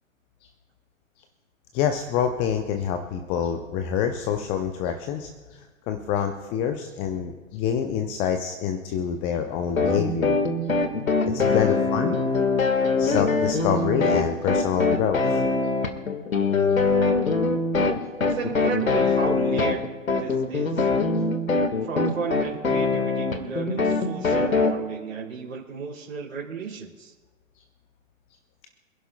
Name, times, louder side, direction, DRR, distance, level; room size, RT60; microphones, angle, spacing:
voice 1, 1.7-10.4 11.3-12.1 13.0-15.4, left 8 dB, 15° left, 6 dB, 0.5 m, -26 dB
sound 1, 9.8-24.7, left 3 dB, 80° left, 1.7 m, -23 dB
voice 2, 18.3-19.9 20.2-20.9 21.8-27.1, right 4 dB, 70° right, -4 dB, 2.9 m, -33 dB
26.5 x 11.0 x 2.2 m, 1.3 s
figure-of-eight pair, 120°, 41 cm